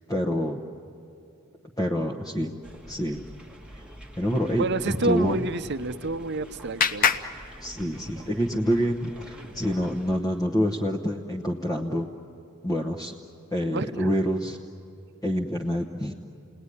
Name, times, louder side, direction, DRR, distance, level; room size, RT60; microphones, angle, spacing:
voice 1, 0.1-0.6 1.8-2.5 2.8-3.2 3.7-3.8 4.2-5.4 7.1-7.2 7.6-12.1 12.6-13.1 13.5-14.6 15.2-16.1, equal, 15° left, 1 dB, 0.9 m, -27 dB
sound 1, 2.6-10.2, equal, 5° right, 1.3 m, -47 dB
voice 2, 4.6-7.2 13.7-14.1, right 3 dB, 50° right, 11 dB, 0.8 m, -29 dB
Clapping, 5.7-8.3, left 6 dB, 40° left, 0.7 m, -29 dB
29.5 x 19.0 x 9.8 m, 2.6 s
head